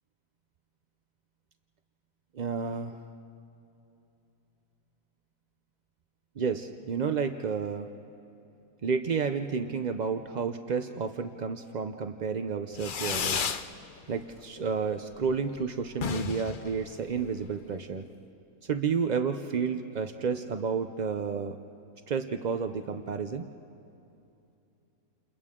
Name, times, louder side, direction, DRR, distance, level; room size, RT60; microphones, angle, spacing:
voice 1, 2.3-3.0 6.4-7.9 8.8-13.5 14.1-18.0 18.7-21.6 22.1-23.4, right 5 dB, 65° right, 7 dB, 0.4 m, -31 dB
Fireworks, 12.7-13.7 14.0-14.6 14.9-15.0 15.2-15.3 15.6-15.7 15.9-17.6, left 6 dB, 50° left, 0.6 m, -33 dB
30.0 x 29.0 x 3.7 m, 2.8 s
omnidirectional pair, 1.7 m